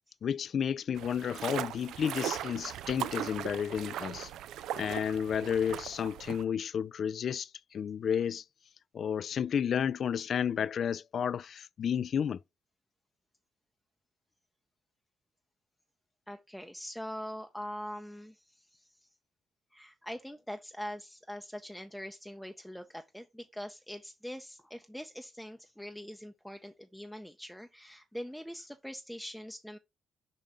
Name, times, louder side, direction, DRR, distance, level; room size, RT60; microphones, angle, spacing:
voice 1, 0.2-4.3 4.8-8.4 8.9-12.4, left 8 dB, 55° left, 0.3 m, -32 dB
sound 1, 1.0-6.4, right 11 dB, 80° right, 0.3 m, -39 dB
voice 2, 16.3-19.1 19.7-29.8, equal, ahead, 0.6 m, -43 dB
5.4 x 5.2 x 3.6 m
cardioid pair, 90°, 0 cm